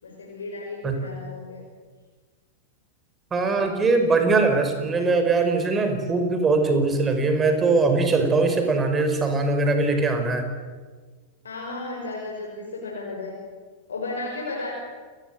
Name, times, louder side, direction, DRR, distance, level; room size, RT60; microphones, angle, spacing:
voice 1, 0.0-1.6 11.4-13.4 13.9-14.7, left 2 dB, 70° left, -2 dB, 5.8 m, -34 dB
voice 2, 3.3-10.5, right 3 dB, 20° right, 6 dB, 5.2 m, -21 dB
29.0 x 20.5 x 7.8 m, 1.4 s
figure-of-eight pair, 90°, 0 cm